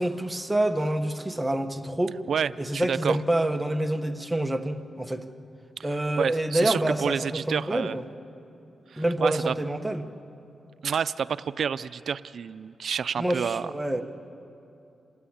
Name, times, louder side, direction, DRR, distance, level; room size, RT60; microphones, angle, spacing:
voice 1, 0.0-2.1 2.6-5.2 5.8-8.0 9.0-10.0 13.2-14.0, right 1 dB, 10° right, 6 dB, 1.2 m, -27 dB
voice 2, 2.3-3.2 6.2-8.0 8.9-9.5 10.8-13.7, right 7 dB, 65° right, 15 dB, 0.5 m, -29 dB
27.0 x 19.0 x 8.8 m, 2.7 s
wide cardioid pair, 115°, 0 cm